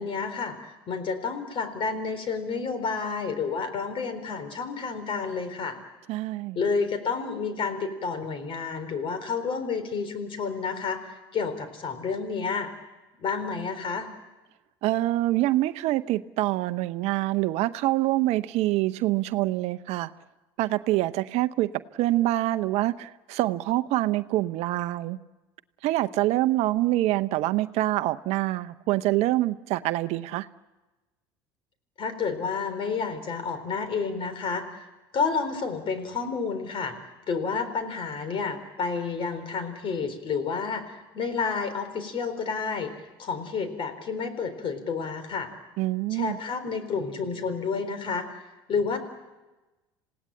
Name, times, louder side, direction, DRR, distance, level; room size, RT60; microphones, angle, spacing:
voice 1, 0.0-5.8 6.6-12.7 13.2-14.1 32.0-34.8 35.1-36.9 37.3-45.5 46.1-48.4 48.7-49.0, left 5 dB, 45° left, 10 dB, 4.0 m, -30 dB
voice 2, 6.1-6.6 14.8-20.1 20.6-21.7 22.0-25.2 25.8-30.5 45.8-46.4, right 16 dB, 60° right, 13 dB, 0.8 m, -25 dB
27.5 x 17.5 x 8.8 m, 1.1 s
hypercardioid pair, 75°, 12 cm